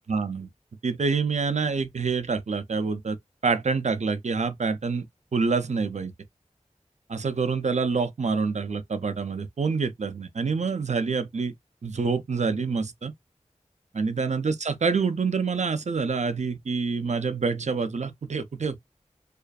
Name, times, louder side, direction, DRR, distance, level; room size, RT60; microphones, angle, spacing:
voice 1, 0.1-0.5 0.8-3.2 3.4-5.1 5.3-6.1 7.1-11.5 11.8-13.1 13.9-18.8, right 4 dB, 65° right, 0.4 m, -26 dB
2.4 x 2.3 x 2.3 m
wide cardioid pair, 50°, 13 cm